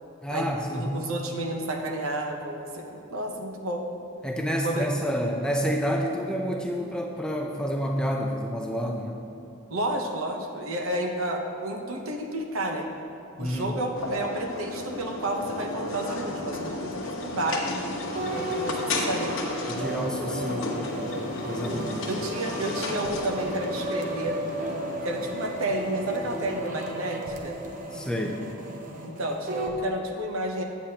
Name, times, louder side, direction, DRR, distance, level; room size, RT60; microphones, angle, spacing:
voice 1, 0.2-0.9 4.2-9.2 13.4-13.8 19.7-22.1 27.9-28.4, equal, 5° left, 1 dB, 0.4 m, -29 dB
voice 2, 0.7-3.9 4.6-4.9 9.7-12.9 13.4-17.7 18.3-19.6 22.1-24.4 25.0-27.6 29.0-30.6, right 1 dB, 75° right, 3 dB, 0.8 m, -31 dB
sound 1, 14.0-26.6, left 2 dB, 60° left, 1.0 m, -34 dB
sound 2, 18.2-29.8, right 1 dB, 35° right, 0.6 m, -35 dB
9.1 x 8.3 x 2.8 m, 2.9 s
head